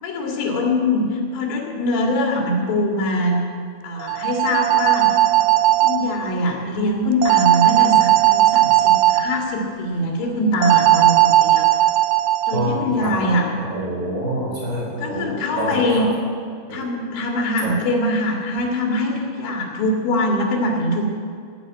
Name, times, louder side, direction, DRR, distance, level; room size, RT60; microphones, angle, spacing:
voice 1, 0.0-3.4 3.8-5.2 5.8-11.7 12.5-13.5 15.0-16.1 16.7-21.1, left 1 dB, 80° left, 0 dB, 4.3 m, -22 dB
sound 1, 4.0-6.0 7.2-9.2 10.6-12.6, right 14 dB, 90° right, 2.1 m, -16 dB
voice 2, 12.5-13.3 13.6-16.0 16.7-16.8, right 1 dB, 25° right, -5 dB, 5.4 m, -26 dB
17.0 x 7.5 x 8.6 m, 2.2 s
omnidirectional pair, 4.9 m